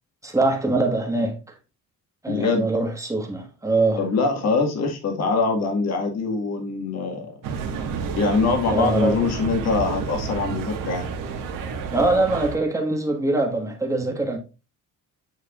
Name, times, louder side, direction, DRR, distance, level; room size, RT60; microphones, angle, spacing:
voice 1, 0.2-1.4 2.2-4.0 8.7-9.2 11.9-14.4, right 2 dB, 10° right, 1.5 m, -23 dB
voice 2, 2.3-2.7 4.0-7.3 8.2-11.1, left 4 dB, 55° left, 1.9 m, -23 dB
sound 1, 7.4-12.6, right 5 dB, 90° right, 1.6 m, -30 dB
9.3 x 4.7 x 2.4 m
cardioid pair, 170°, 32 cm